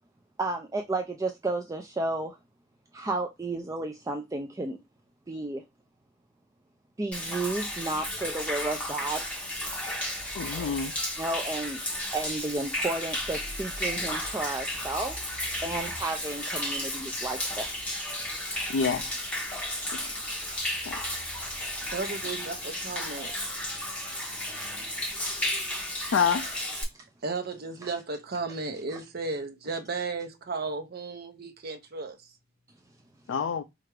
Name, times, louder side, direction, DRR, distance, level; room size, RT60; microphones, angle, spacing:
voice 1, 0.4-2.4 2.9-4.8 5.3-5.6 7.0-9.3 11.2-11.8 12.1-15.2 15.6-17.7 18.7-18.8 28.9-29.0, right 2 dB, 15° right, 0.3 m, -32 dB
Human voice / Rain / Stream, 7.1-26.8, left 1 dB, 5° left, 1.3 m, -33 dB
voice 2, 10.4-10.9 18.7-19.1 19.9-20.1 20.8-21.0 26.1-26.4 33.3-33.6, left 6 dB, 65° left, 0.3 m, -27 dB
voice 3, 21.9-23.3 27.2-32.2, right 3 dB, 50° right, 0.7 m, -34 dB
4.4 x 2.4 x 3.2 m
head